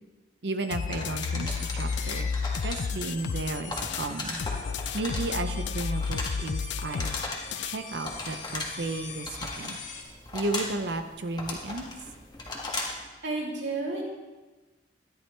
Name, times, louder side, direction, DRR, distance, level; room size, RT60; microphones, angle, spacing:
voice 1, 0.4-2.3 2.6-4.4 4.9-7.1 7.6-9.8 10.3-11.9, right 2 dB, 70° right, 7 dB, 0.7 m, -33 dB
sound 1, 0.6-10.0, left 4 dB, 45° left, 1.8 m, -43 dB
sound 2, 0.7-4.1 4.4-7.8, left 5 dB, 75° left, 0.4 m, -32 dB
sound 3, 0.9-13.1, left 2 dB, 25° left, 1.7 m, -38 dB
voice 2, 13.2-14.0, right 3 dB, 85° right, -3 dB, 3.1 m, -31 dB
13.5 x 11.5 x 3.4 m, 1.2 s
head